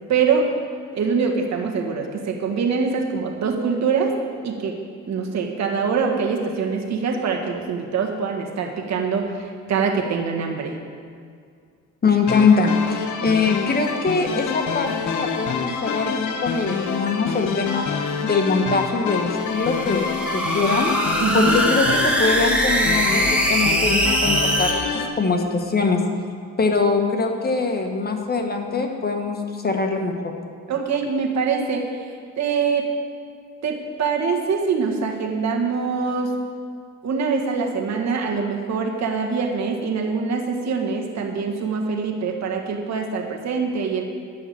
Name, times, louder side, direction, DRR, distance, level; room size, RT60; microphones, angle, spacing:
voice 1, 0.1-0.5 0.9-4.2 4.4-4.8 5.1-10.8 21.2-21.6 30.7-31.9 32.4-32.9 33.6-36.3 37.0-44.0, right 5 dB, 65° right, 2 dB, 1.7 m, -24 dB
voice 2, 12.0-17.9 18.2-20.9 21.3-26.0 26.6-30.3, left 4 dB, 30° left, 3 dB, 1.4 m, -22 dB
sound 1, 12.3-25.1, left 6 dB, 75° left, 1.2 m, -27 dB
sound 2, 19.3-24.7, right 1 dB, 5° right, 1.8 m, -22 dB
11.0 x 5.9 x 8.4 m, 2.2 s
cardioid pair, 90°, 30 cm